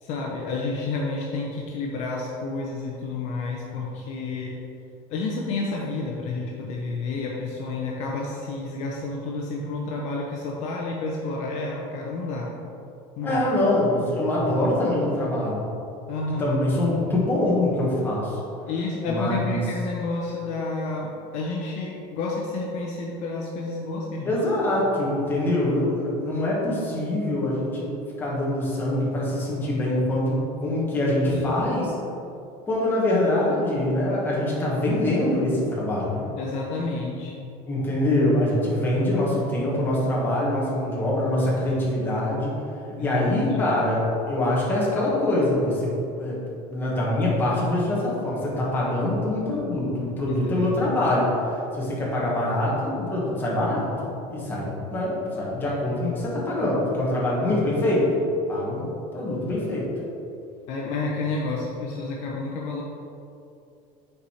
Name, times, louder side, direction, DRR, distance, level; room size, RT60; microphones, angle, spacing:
voice 1, 0.0-4.5 5.1-12.5 13.2-13.4 13.8-13.9 16.1-16.6 18.6-24.3 31.3-31.6 34.2-34.7 36.4-37.5 42.9-43.7 50.3-50.9 55.7-55.8 57.6-57.8 60.7-62.8, left 3 dB, 45° left, -2 dB, 0.7 m, -30 dB
voice 2, 13.2-15.6 16.4-18.4 19.1-19.6 24.3-27.9 28.2-31.9 32.7-36.2 37.7-42.6 43.0-45.9 46.2-46.4 46.7-58.1 58.5-58.9 59.1-59.9, left 1 dB, 15° left, -6 dB, 1.3 m, -24 dB
6.7 x 4.7 x 4.3 m, 2.7 s
cardioid pair, 180°, 15 cm